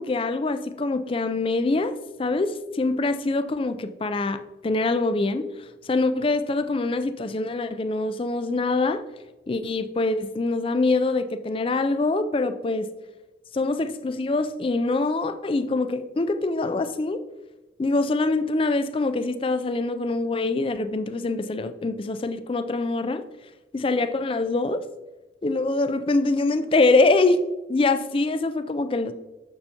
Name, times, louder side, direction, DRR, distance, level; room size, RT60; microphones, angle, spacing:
voice 1, 0.0-5.4 5.8-9.0 9.5-12.9 13.5-17.2 17.8-23.2 23.7-24.8 25.4-27.4 27.7-29.1, left 3 dB, 30° left, 10 dB, 0.3 m, -24 dB
6.9 x 6.6 x 2.8 m, 1.1 s
head